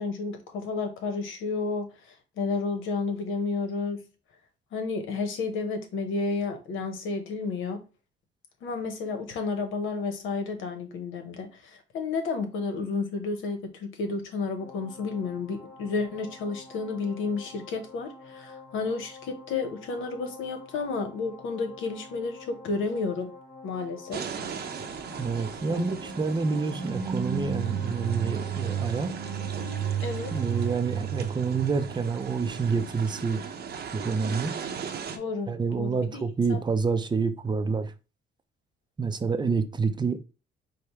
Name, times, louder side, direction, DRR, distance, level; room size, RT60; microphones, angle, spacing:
voice 1, 0.0-4.0 4.7-7.8 8.6-23.3 23.6-24.2 25.7-25.9 30.0-30.3 35.1-35.5 35.8-36.2 36.5-36.6, left 4 dB, 85° left, 1.0 m, -31 dB
sound 1, 14.6-30.8, left 4 dB, 60° left, 2.0 m, -48 dB
sound 2, 24.1-35.2, right 6 dB, 55° right, 0.8 m, -38 dB
voice 2, 25.2-29.1 30.3-33.4 33.9-34.5 35.5-37.9 39.0-40.2, right 4 dB, 20° right, 0.5 m, -28 dB
sound 3, 26.6-32.6, right 8 dB, 90° right, 0.6 m, -32 dB
5.0 x 2.2 x 4.4 m
cardioid pair, 90°, 20 cm